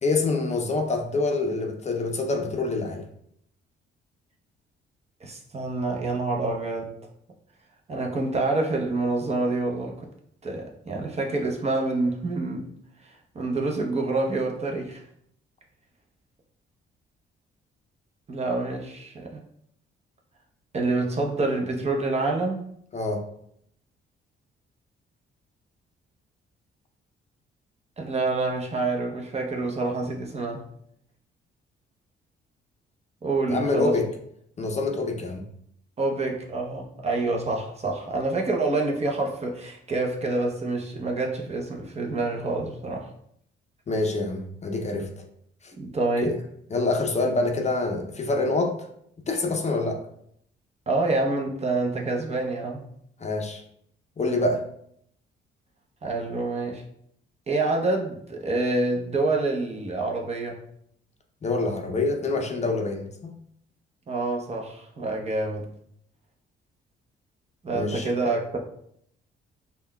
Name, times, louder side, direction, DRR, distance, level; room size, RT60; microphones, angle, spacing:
voice 1, 0.0-3.0 22.9-23.2 33.5-34.1 34.6-35.5 43.9-45.1 46.2-46.4 46.7-48.8 49.3-50.0 53.2-53.6 54.2-54.6 61.4-63.4 67.7-68.1, left 3 dB, 35° left, 3 dB, 0.5 m, -26 dB
voice 2, 5.2-6.9 7.9-9.9 10.4-12.7 13.0-15.0 18.3-19.4 20.7-22.7 28.0-30.6 33.2-34.0 36.0-43.1 45.8-46.3 50.9-52.9 56.0-56.8 57.5-60.6 64.1-65.7 67.6-68.6, right 2 dB, 35° right, 1 dB, 0.7 m, -27 dB
5.3 x 2.2 x 2.2 m, 0.70 s
cardioid pair, 90°, 20 cm